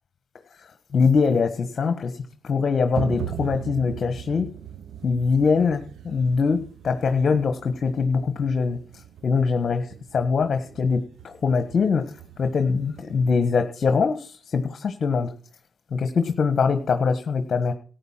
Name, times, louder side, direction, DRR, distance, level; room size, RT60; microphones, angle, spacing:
voice 1, 0.9-4.5 5.0-8.8 9.2-12.0 12.4-15.3 15.9-17.7, left 5 dB, 45° left, 8 dB, 1.4 m, -23 dB
sound 1, 2.9-13.5, right 9 dB, 65° right, 0.8 m, -39 dB
13.5 x 9.2 x 5.8 m, 0.41 s
cardioid pair, 90°, 0 cm